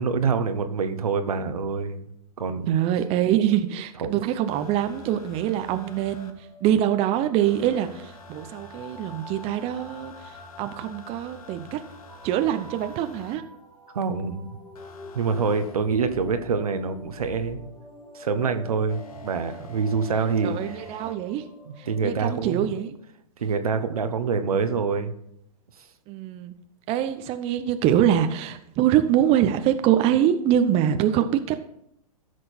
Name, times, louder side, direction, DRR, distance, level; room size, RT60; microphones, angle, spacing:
voice 1, 0.0-2.0 2.4-2.8 4.0-4.1 13.9-14.6 15.1-17.6 18.1-20.8 21.7-22.7 23.4-25.1, right 5 dB, 75° right, 8 dB, 1.2 m, -26 dB
voice 2, 2.7-11.8 12.2-13.4 20.4-21.4 21.8-23.0 26.1-26.5 26.9-31.6, right 10 dB, 30° right, 9 dB, 0.7 m, -24 dB
sound 1, 4.5-6.3 7.4-13.4 14.7-17.7 18.9-21.1 22.3-22.4, left 3 dB, 70° left, 1.6 m, -47 dB
sound 2, 5.3-22.0, equal, 20° left, 1.7 m, -47 dB
14.0 x 6.4 x 4.4 m, 0.75 s
hypercardioid pair, 115°, 19 cm